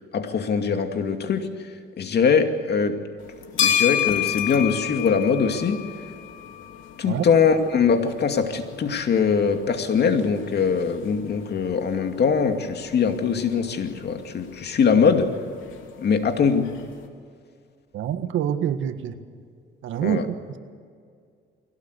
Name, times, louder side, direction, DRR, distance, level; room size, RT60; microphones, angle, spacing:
voice 1, 0.1-1.5 2.0-3.0 3.6-5.9 7.0-15.3 16.0-16.8 20.0-20.3, left 6 dB, 55° left, 6 dB, 2.4 m, -22 dB
sound 1, 3.2-17.1, left 10 dB, 80° left, 2.9 m, -32 dB
voice 2, 17.9-19.2 19.8-20.2, right 10 dB, 80° right, 9 dB, 1.7 m, -26 dB
22.5 x 17.5 x 8.2 m, 2.2 s
cardioid pair, 90°, 20 cm